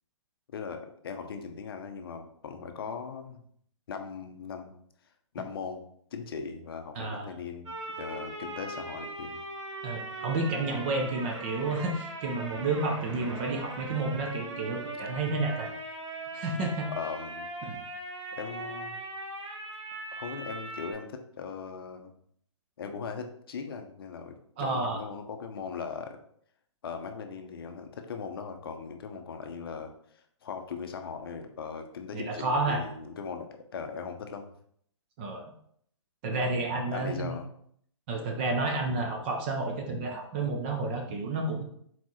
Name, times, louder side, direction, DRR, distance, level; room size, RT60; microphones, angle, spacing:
voice 1, 0.5-3.4 3.9-4.7 5.3-5.8 6.1-9.4 16.9-17.5 18.3-19.0 20.1-22.1 22.8-26.2 26.8-34.5 36.9-37.5, left 6 dB, 50° left, 6 dB, 0.6 m, -39 dB
voice 2, 7.0-7.3 9.8-15.7 16.3-16.9 17.6-17.8 24.6-25.0 32.1-32.8 35.2-35.4 36.2-37.4 38.1-41.6, right 3 dB, 20° right, 2 dB, 0.5 m, -30 dB
sound 1, 7.7-20.9, right 2 dB, 70° right, 1.3 m, -40 dB
4.2 x 4.1 x 3.0 m, 0.65 s
hypercardioid pair, 160°, 16 cm